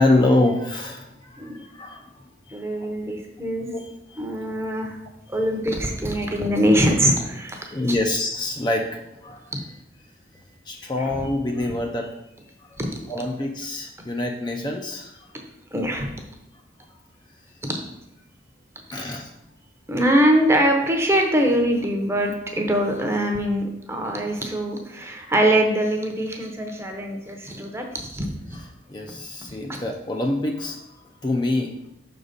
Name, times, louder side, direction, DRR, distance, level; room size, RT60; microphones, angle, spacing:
voice 1, 0.0-2.1 2.5-2.9 3.7-4.5 5.3-5.4 7.7-9.5 10.7-12.2 12.6-12.8 13.1-15.3 18.9-19.3 24.0-24.1 28.5-31.9, left 2 dB, 25° left, 2 dB, 0.4 m, -26 dB
voice 2, 2.5-3.7 4.2-5.0 5.3-7.8 9.5-9.6 11.2-11.3 12.8-12.9 15.7-16.1 17.6-17.8 19.9-28.6, right 1 dB, 15° right, 2 dB, 0.8 m, -23 dB
6.0 x 4.0 x 5.1 m, 0.86 s
head